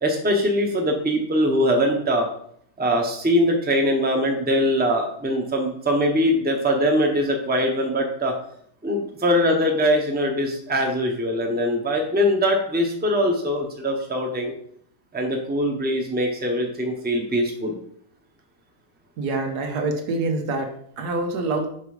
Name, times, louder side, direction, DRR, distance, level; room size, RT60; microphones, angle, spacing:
voice 1, 0.0-2.3 2.8-8.3 8.8-14.5 15.1-17.8, equal, 10° right, 2 dB, 0.9 m, -22 dB
voice 2, 19.2-21.7, right 3 dB, 85° right, 4 dB, 1.6 m, -26 dB
6.0 x 4.7 x 4.9 m, 0.67 s
omnidirectional pair, 1.6 m